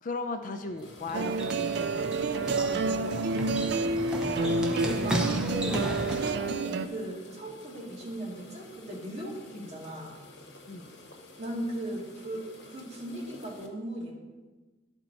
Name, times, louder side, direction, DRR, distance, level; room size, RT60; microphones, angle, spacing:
voice 1, 0.0-2.2 9.5-9.7 10.7-10.9, left 3 dB, 45° left, 6 dB, 0.5 m, -37 dB
sound 1, 0.7-6.3, right 1 dB, 5° right, 0.7 m, -35 dB
sound 2, 0.8-13.7, left 2 dB, 70° left, 1.1 m, -50 dB
sound 3, 1.1-6.9, right 3 dB, 60° right, 0.4 m, -29 dB
voice 2, 2.3-3.5 4.0-10.2 11.4-14.2, right 1 dB, 35° right, -4 dB, 2.0 m, -38 dB
11.5 x 4.5 x 4.0 m, 1.2 s
head